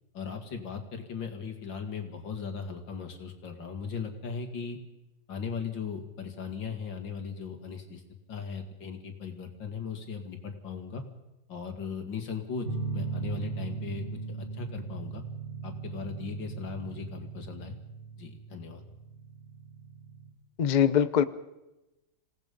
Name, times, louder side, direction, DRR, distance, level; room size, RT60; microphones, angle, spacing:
voice 1, 0.1-4.8 5.3-8.0 8.3-11.0 11.5-15.2 15.6-17.8 18.2-18.8, left 6 dB, 80° left, 5 dB, 2.9 m, -38 dB
sound 1, 12.6-20.3, right 5 dB, 20° left, 7.8 m, -38 dB
voice 2, 20.6-21.2, left 8 dB, 55° left, 13 dB, 0.5 m, -22 dB
27.0 x 18.0 x 5.4 m, 0.98 s
omnidirectional pair, 2.0 m